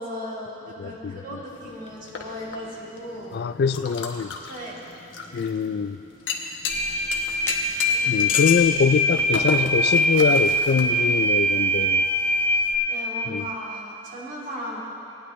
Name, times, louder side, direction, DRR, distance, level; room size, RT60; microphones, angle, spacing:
voice 1, 0.0-3.4 4.5-4.8 7.9-8.4 12.9-14.8, equal, 45° right, -6 dB, 2.7 m, -36 dB
voice 2, 0.8-1.4 3.3-4.4 5.3-6.0 8.1-12.0 13.3-13.5, left 5 dB, 55° left, 12 dB, 0.3 m, -24 dB
sound 1, 1.5-11.2, left 5 dB, 80° left, 1.1 m, -34 dB
sound 2, 6.7-12.7, equal, 15° left, 1.2 m, -22 dB
19.5 x 9.9 x 3.1 m, 2.9 s
head